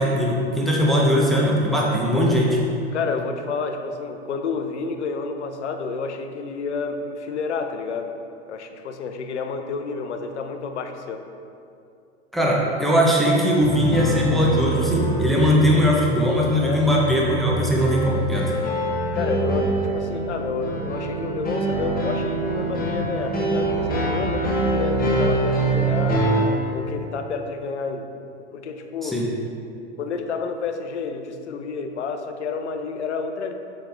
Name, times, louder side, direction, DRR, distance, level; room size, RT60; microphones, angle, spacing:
voice 1, 0.0-2.6 12.3-18.5 29.0-29.3, equal, ahead, -5 dB, 1.2 m, -20 dB
voice 2, 2.9-8.1 8.5-11.3 16.6-16.9 19.1-26.3 26.7-28.1 28.5-29.2 30.0-33.5, left 5 dB, 80° left, 6 dB, 0.8 m, -30 dB
sound 1, 13.6-26.4, right 2 dB, 25° left, 1.5 m, -25 dB
7.2 x 6.5 x 3.6 m, 2.5 s
hypercardioid pair, 95°, 34 cm